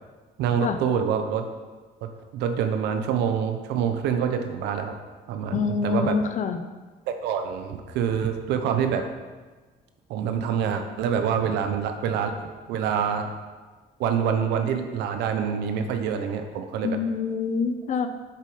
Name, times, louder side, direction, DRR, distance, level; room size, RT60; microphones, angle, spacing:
voice 1, 0.4-1.4 2.0-4.9 5.3-6.2 7.1-9.0 10.1-12.3 12.7-13.3 14.0-17.0, right 7 dB, 85° right, 6 dB, 1.0 m, -26 dB
voice 2, 5.5-6.6 16.8-18.1, left 5 dB, 45° left, 9 dB, 0.8 m, -25 dB
8.2 x 7.0 x 5.1 m, 1.3 s
cardioid pair, 110°, 17 cm